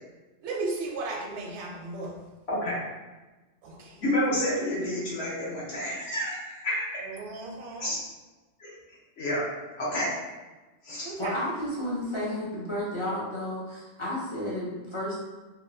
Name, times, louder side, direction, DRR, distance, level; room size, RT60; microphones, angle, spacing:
voice 1, 0.4-2.2 3.6-4.0 7.0-8.0 11.0-11.4, right 3 dB, 80° right, 0 dB, 0.9 m, -35 dB
voice 2, 2.5-2.8 4.0-6.9 7.8-8.0 8.6-8.7 9.2-9.4 9.8-10.1 10.8-11.1, left 1 dB, 70° left, -7 dB, 1.2 m, -29 dB
voice 3, 11.2-15.2, left 1 dB, 35° left, -7 dB, 0.5 m, -32 dB
2.9 x 2.2 x 2.6 m, 1.2 s
omnidirectional pair, 1.2 m